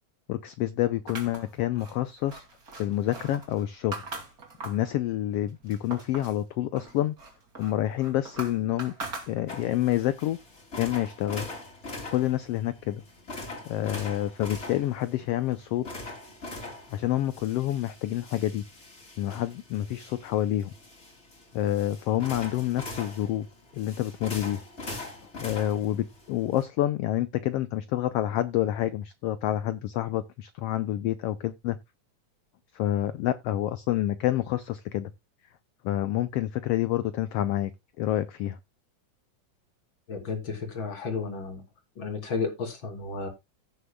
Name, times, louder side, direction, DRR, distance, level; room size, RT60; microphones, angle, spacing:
voice 1, 0.3-2.4 2.8-4.0 4.6-7.1 7.6-8.9 9.3-10.4 10.8-11.5 12.1-13.0 13.7-15.8 16.9-18.6 19.2-20.7 21.5-23.5 23.7-24.6 25.4-31.8 32.7-35.1 35.8-37.7 38.0-38.6, left 13 dB, 85° left, 1.3 m, -28 dB
sound 1, 1.1-4.9 5.3-6.4 6.8-9.8, right 3 dB, 30° right, 2.8 m, -41 dB
sound 2, 9.5-26.6, left 2 dB, 20° left, 2.7 m, -42 dB
voice 2, 40.1-41.6 42.0-43.3, left 4 dB, 40° left, 3.2 m, -32 dB
16.5 x 6.6 x 2.2 m
omnidirectional pair, 3.4 m